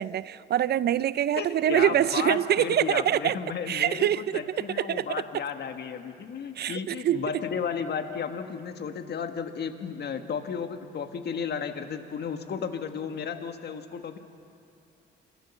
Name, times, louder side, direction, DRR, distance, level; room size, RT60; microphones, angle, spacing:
voice 1, 0.0-3.4 3.7-5.2 6.6-7.2, right 10 dB, 55° right, 17 dB, 0.4 m, -25 dB
voice 2, 1.4-14.2, left 6 dB, 55° left, 7 dB, 1.5 m, -33 dB
27.0 x 15.0 x 7.1 m, 2.6 s
cardioid pair, 90°, 20 cm